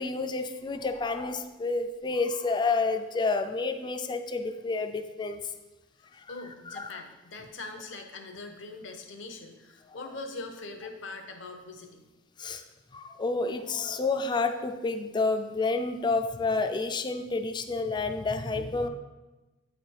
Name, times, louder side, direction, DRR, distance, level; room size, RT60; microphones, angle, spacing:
voice 1, 0.0-5.4 6.1-6.3 6.7-7.0 12.4-12.6 12.9-18.9, left 3 dB, 25° left, 6 dB, 0.4 m, -29 dB
voice 2, 6.3-12.0, left 3 dB, 75° left, 5 dB, 0.8 m, -42 dB
8.7 x 3.3 x 4.4 m, 1.1 s
head